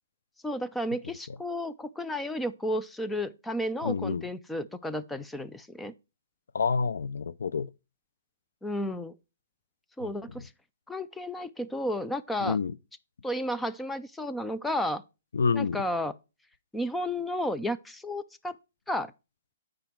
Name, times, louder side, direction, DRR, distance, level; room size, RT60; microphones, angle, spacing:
voice 1, 0.4-5.9 8.6-9.1 10.0-10.5 10.9-12.6 13.2-15.0 15.5-16.1 16.7-18.6 18.9-19.1, left 1 dB, 5° left, 0.4 m, -32 dB
voice 2, 3.8-4.2 6.5-7.7 10.0-10.1 12.4-12.7 15.3-15.8, left 5 dB, 85° left, 0.5 m, -28 dB
9.2 x 4.9 x 4.5 m
hypercardioid pair, 160°, 0 cm